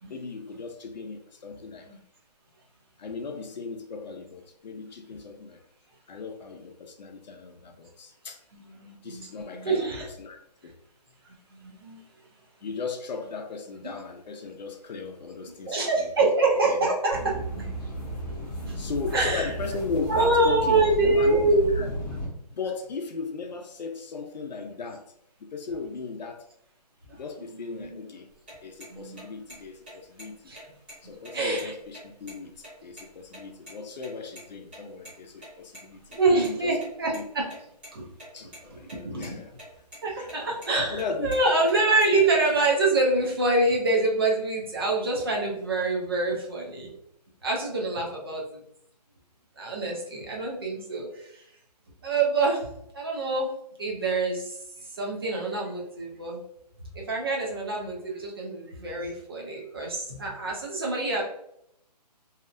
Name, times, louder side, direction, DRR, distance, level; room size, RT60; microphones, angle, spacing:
voice 1, 0.1-1.9 3.0-5.6 6.1-8.4 9.0-10.7 12.6-16.1 16.7-16.8 17.7-17.8 18.7-22.0 22.5-25.0 25.4-26.5 27.1-28.3 28.6-30.5 31.0-36.2 36.4-36.8 37.1-37.2 38.3-39.5 40.1-40.3 40.9-41.4, left 4 dB, 85° left, 4 dB, 0.5 m, -37 dB
voice 2, 8.5-10.1 11.5-12.0 15.5-17.7 18.6-18.8 19.1-19.5 20.1-21.7 27.1-27.2 27.5-28.0 28.9-29.2 30.5-30.6 31.3-31.7 36.2-37.4 37.9-38.1 38.7-39.4 40.0-46.9 47.4-48.6 49.6-51.4 52.0-52.7 52.9-53.5 53.8-56.4 56.9-61.2, right 2 dB, 35° right, -2 dB, 0.6 m, -26 dB
sound 1, 17.1-22.3, equal, 10° left, 0.7 m, -34 dB
sound 2, 28.3-33.4 33.7-33.8 34.0-34.1 34.4-34.5 34.7-34.8 35.0-35.1 35.4-36.5 36.8-37.2 37.5-38.3 38.5-39.0 39.2-39.7 39.9-40.0 40.3-40.7 41.0-42.2, equal, 15° right, 0.9 m, -45 dB
2.8 x 2.0 x 2.4 m, 0.75 s
hypercardioid pair, 170°, 21 cm